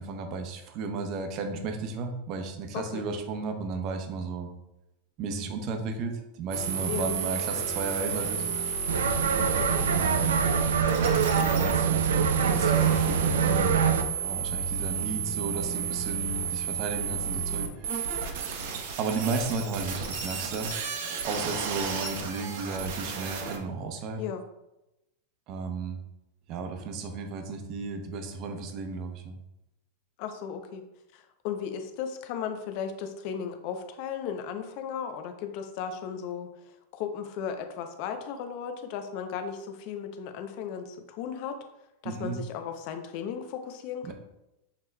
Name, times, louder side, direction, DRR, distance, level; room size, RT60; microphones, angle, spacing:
voice 1, 0.0-4.5 5.2-8.4 9.9-10.4 11.0-13.8 14.2-18.6 19.0-20.7 21.2-24.2 25.5-26.0 26.5-29.4 42.0-42.4 44.1-44.2, right 4 dB, 45° right, 5 dB, 0.7 m, -34 dB
voice 2, 2.7-3.0 6.9-7.1 9.4-9.7 24.2-24.4 30.2-30.8 31.1-41.6 42.0-44.1, left 7 dB, 55° left, 6 dB, 0.5 m, -36 dB
sound 1, 6.5-23.6, right 6 dB, 70° right, 0.9 m, -32 dB
sound 2, 8.9-14.0, right 6 dB, 90° right, 0.5 m, -24 dB
6.5 x 3.0 x 2.2 m, 0.93 s
hypercardioid pair, 115°, 0 cm